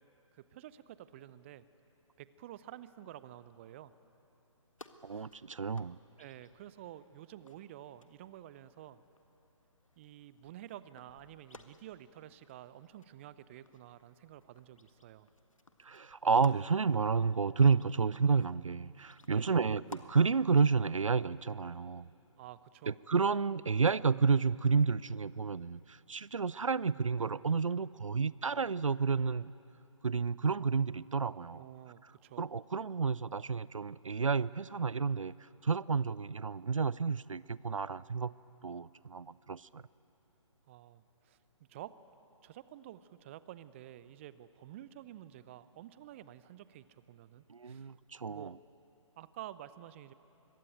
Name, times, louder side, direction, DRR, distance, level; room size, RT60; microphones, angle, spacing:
voice 1, 0.3-1.6 2.2-3.9 5.1-5.2 6.2-9.0 10.0-15.3 19.3-19.6 22.4-23.0 31.5-32.5 40.7-41.4 41.7-41.9 42.4-47.9 48.3-48.6 49.2-50.1, right 12 dB, 25° right, 16 dB, 0.6 m, -50 dB
sound 1, 4.8-20.1, left 2 dB, 80° left, 1.6 m, -59 dB
voice 2, 5.0-6.0 15.8-22.1 22.9-29.5 30.0-31.6 32.4-35.3 35.6-38.3 38.6-39.8 47.5-48.5, right 5 dB, 75° right, 21 dB, 0.5 m, -30 dB
25.0 x 21.5 x 9.2 m, 3.0 s
figure-of-eight pair, 135°, 17 cm